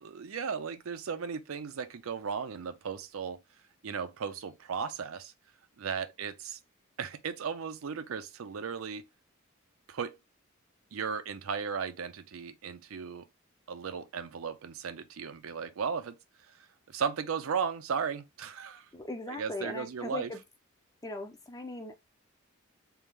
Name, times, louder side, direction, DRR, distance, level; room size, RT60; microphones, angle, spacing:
voice 1, 0.0-3.4 3.8-5.3 5.8-6.6 7.0-9.1 9.9-10.2 10.9-13.3 13.7-16.2 16.9-18.9 19.3-20.3, right 6 dB, 80° right, 0.5 m, -36 dB
voice 2, 18.9-20.4 21.0-21.9, left 2 dB, 15° left, 0.6 m, -39 dB
3.5 x 2.5 x 3.1 m
head